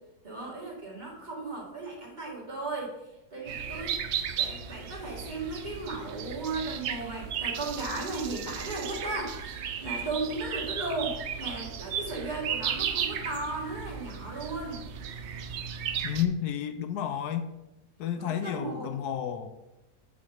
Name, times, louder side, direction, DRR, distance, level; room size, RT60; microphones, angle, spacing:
voice 1, 0.2-3.0 3.3-4.0 4.3-14.8 18.2-18.9, right 2 dB, 25° right, -3 dB, 1.9 m, -36 dB
sound 1, 3.5-16.3, right 8 dB, 75° right, 0.6 m, -35 dB
voice 2, 16.0-17.5 18.0-19.6, left 9 dB, 75° left, 8 dB, 1.1 m, -31 dB
7.3 x 4.0 x 6.4 m, 0.95 s
omnidirectional pair, 1.8 m